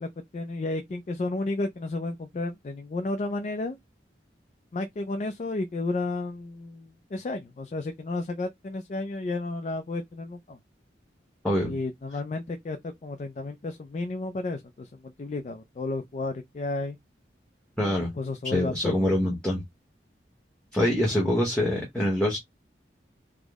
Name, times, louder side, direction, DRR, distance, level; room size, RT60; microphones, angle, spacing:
voice 1, 0.0-3.8 4.7-10.6 11.6-17.0 17.8-19.1, left 2 dB, 40° left, 0.3 m, -32 dB
voice 2, 11.4-11.8 17.8-18.1 18.4-19.6 20.7-22.4, left 1 dB, 5° left, 0.8 m, -25 dB
3.5 x 2.0 x 3.4 m
head